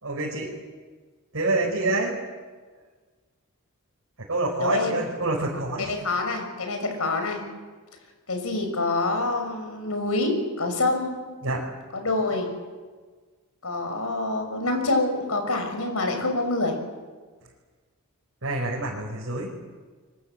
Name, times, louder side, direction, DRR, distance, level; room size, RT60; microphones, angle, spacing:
voice 1, 0.0-0.5 1.3-2.1 4.3-5.9 11.4-11.6 18.4-19.5, right 2 dB, 65° right, -4 dB, 4.8 m, -27 dB
voice 2, 4.6-5.0 5.8-7.4 8.3-11.2 11.9-12.5 13.6-16.8, left 2 dB, 70° left, 6 dB, 6.2 m, -26 dB
26.0 x 24.0 x 7.7 m, 1.4 s
head